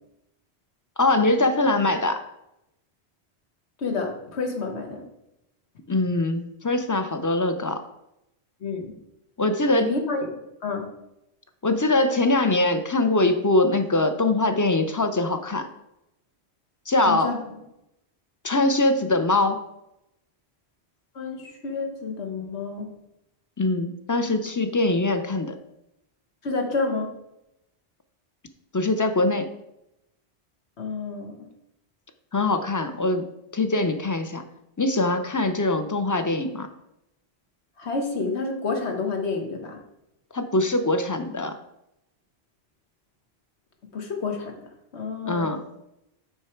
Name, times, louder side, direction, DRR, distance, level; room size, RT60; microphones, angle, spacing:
voice 1, 1.0-2.2 5.9-7.8 9.4-10.0 11.6-15.7 16.9-17.3 18.4-19.6 23.6-25.6 28.7-29.5 32.3-33.2 33.5-34.4 34.8-36.7 40.3-41.6 45.3-45.6, left 2 dB, 20° left, 8 dB, 0.5 m, -22 dB
voice 2, 3.8-5.0 8.6-8.9 9.7-10.9 17.0-17.4 21.1-22.9 26.4-27.1 30.8-31.5 37.8-39.8 43.9-44.5 44.9-45.5, left 4 dB, 85° left, 3 dB, 1.6 m, -29 dB
8.2 x 5.7 x 4.5 m, 0.85 s
omnidirectional pair, 1.1 m